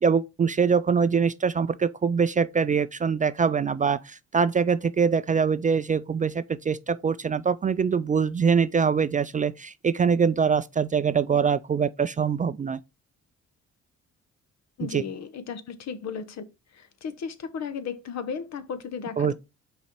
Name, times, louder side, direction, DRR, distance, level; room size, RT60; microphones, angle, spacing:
voice 1, 0.0-12.8 14.8-15.0 19.2-19.3, right 6 dB, 25° right, 0.3 m, -23 dB
voice 2, 14.8-16.4 16.7-19.3, left 6 dB, 60° left, 1.0 m, -35 dB
5.6 x 4.2 x 4.4 m
cardioid pair, 90°, 30 cm